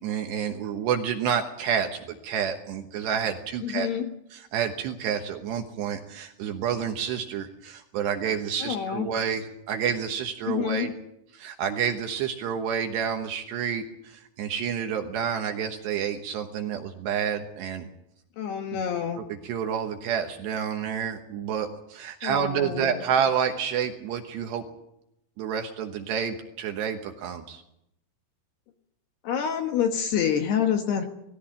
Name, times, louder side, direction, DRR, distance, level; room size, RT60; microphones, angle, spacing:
voice 1, 0.0-3.9 4.3-10.9 11.3-17.9 18.7-18.8 19.3-24.7 25.4-27.6, right 8 dB, 70° right, 5 dB, 2.8 m, -29 dB
voice 2, 3.6-4.1 8.6-9.1 10.5-10.9 18.4-19.2 22.2-23.0 29.2-31.1, left 8 dB, 65° left, 5 dB, 2.8 m, -27 dB
20.5 x 15.5 x 8.8 m, 0.79 s
omnidirectional pair, 6.0 m